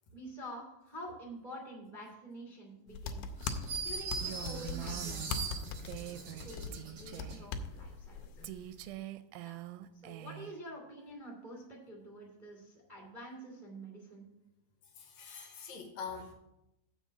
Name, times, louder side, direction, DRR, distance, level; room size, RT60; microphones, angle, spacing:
voice 1, 0.1-3.3 3.8-5.7 6.4-8.4 9.4-9.6 9.9-14.2, right 1 dB, 30° right, -3 dB, 0.7 m, -48 dB
sound 1, 2.9-8.9, left 4 dB, 85° left, 2.5 m, -41 dB
sound 2, 3.4-7.4, right 4 dB, 60° right, 1.6 m, -41 dB
Female speech woman speaking, 4.2-6.5 6.7-7.5 8.4-10.6, right 13 dB, 80° right, 2.3 m, -44 dB
voice 2, 14.8-16.3, left 5 dB, 65° left, 3 dB, 1.9 m, -45 dB
7.3 x 5.5 x 7.4 m, 0.88 s
omnidirectional pair, 4.4 m